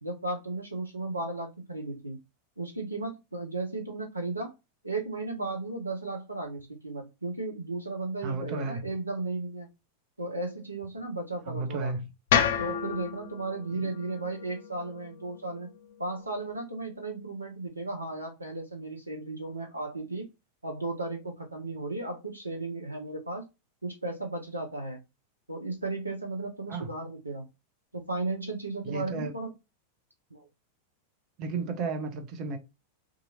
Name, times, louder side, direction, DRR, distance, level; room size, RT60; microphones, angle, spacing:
voice 1, 0.0-2.2 2.6-4.5 4.8-9.7 10.2-12.0 12.6-15.7 16.0-20.3 20.6-23.4 23.8-25.0 25.5-27.5 27.9-29.5 30.3-30.5, right 2 dB, 85° right, 0.6 m, -35 dB
voice 2, 8.2-8.8 11.5-12.1 13.7-13.9 26.7-26.9 28.8-29.3 31.4-32.6, right 3 dB, 40° right, 0.7 m, -33 dB
sound 1, 12.3-16.5, left 8 dB, 55° left, 0.3 m, -31 dB
2.8 x 2.4 x 2.7 m
figure-of-eight pair, 90°, 0 cm